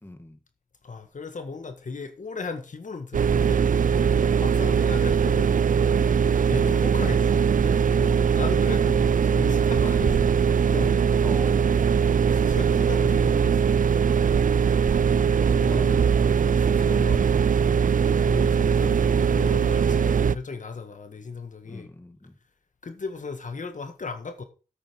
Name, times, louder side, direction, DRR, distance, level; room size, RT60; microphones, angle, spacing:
voice 1, 0.0-0.4 9.8-10.3 11.2-11.7 21.6-22.3, left 1 dB, 15° left, 2.1 m, -41 dB
voice 2, 0.8-3.9 4.4-5.6 6.4-10.1 10.4-10.9 12.3-13.7 15.5-16.1 16.4-17.3 17.9-21.9 22.8-24.4, left 4 dB, 60° left, 1.7 m, -36 dB
sound 1, 3.1-20.4, right 7 dB, 65° right, 0.5 m, -21 dB
10.5 x 8.7 x 4.7 m
wide cardioid pair, 100°, 15 cm